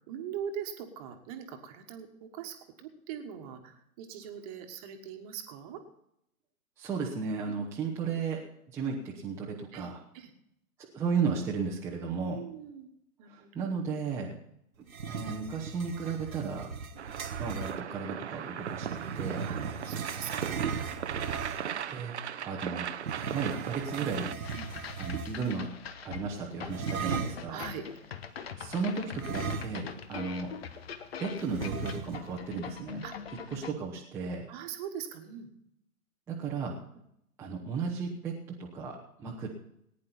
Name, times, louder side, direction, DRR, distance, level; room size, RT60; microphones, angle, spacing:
voice 1, 0.0-5.8 7.5-7.6 9.7-10.3 12.3-13.7 14.1-14.2 16.9-17.1 19.4-19.6 19.8-20.8 24.5-24.7 27.0-28.2 33.0-33.1 34.5-35.5, right 8 dB, 25° right, 6 dB, 1.5 m, -42 dB
voice 2, 6.8-8.4 8.7-10.0 10.9-12.4 13.3-14.3 15.0-16.7 17.4-19.5 21.9-22.1 22.4-22.9 23.3-24.3 25.0-25.7 26.0-27.6 28.6-29.8 30.1-30.5 31.2-33.0 33.5-34.5 36.3-36.8 37.4-39.5, right 5 dB, 5° right, -5 dB, 0.9 m, -34 dB
sound 1, 14.9-17.8 18.6-21.8 23.0-25.6 26.7-27.5 29.2-30.1 30.4-30.5 31.5-32.4, right 6 dB, 65° right, 1.1 m, -37 dB
sound 2, 17.0-24.3, right 9 dB, 50° right, 0.8 m, -38 dB
sound 3, 24.4-33.7, left 7 dB, 40° left, 1.1 m, -43 dB
19.0 x 9.8 x 4.2 m, 0.77 s
figure-of-eight pair, 125°, 44 cm